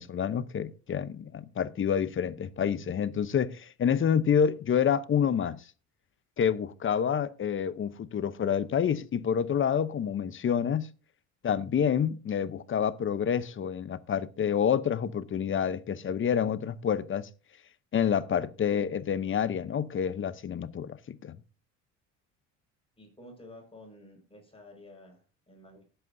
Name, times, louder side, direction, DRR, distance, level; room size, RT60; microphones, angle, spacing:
voice 1, 0.0-5.6 6.4-10.9 11.4-17.3 17.9-21.4, left 8 dB, 35° left, 0.8 m, -28 dB
voice 2, 23.0-25.8, left 1 dB, 15° left, 5.4 m, -51 dB
19.0 x 8.0 x 2.7 m
supercardioid pair, 90°, 35 cm